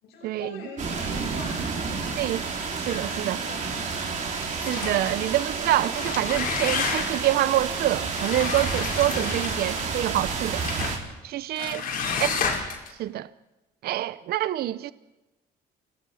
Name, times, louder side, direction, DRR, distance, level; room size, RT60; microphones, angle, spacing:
voice 1, 0.0-2.0 2.3-4.6 9.1-9.8 11.5-12.5, left 3 dB, 90° left, 6.0 m, -44 dB
sound 1, 0.8-11.0, right 5 dB, 50° right, 4.5 m, -30 dB
voice 2, 2.9-3.4 4.5-10.7 11.2-11.8 12.2-12.4 13.0-13.3 13.8-14.9, right 14 dB, 65° right, 0.7 m, -26 dB
sound 2, 4.6-5.2 5.8-7.3 8.1-9.9 10.6-11.0 11.6-12.9, left 5 dB, 55° left, 5.1 m, -30 dB
28.0 x 19.5 x 5.6 m
cardioid pair, 110°, 17 cm